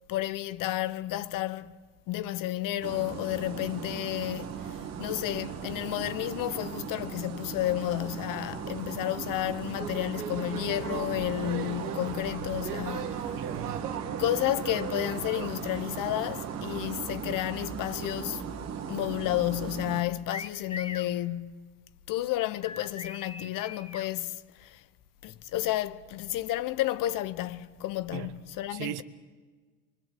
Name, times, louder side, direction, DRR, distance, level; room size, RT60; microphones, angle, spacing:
voice 1, 0.1-13.3 14.2-18.4 18.9-21.7 22.1-24.8 25.2-29.0, left 14 dB, 45° left, 1.1 m, -31 dB
sound 1, 2.8-20.0, right 7 dB, 35° right, 2.2 m, -37 dB
sound 2, 9.7-17.0, right 8 dB, 85° right, 1.8 m, -41 dB
voice 2, 13.4-13.8 28.1-28.3 28.7-29.0, right 14 dB, 55° right, 1.4 m, -37 dB
sound 3, 20.3-21.1 22.6-24.1, left 4 dB, 15° left, 1.3 m, -40 dB
24.5 x 24.0 x 7.8 m
hypercardioid pair, 90°, 46 cm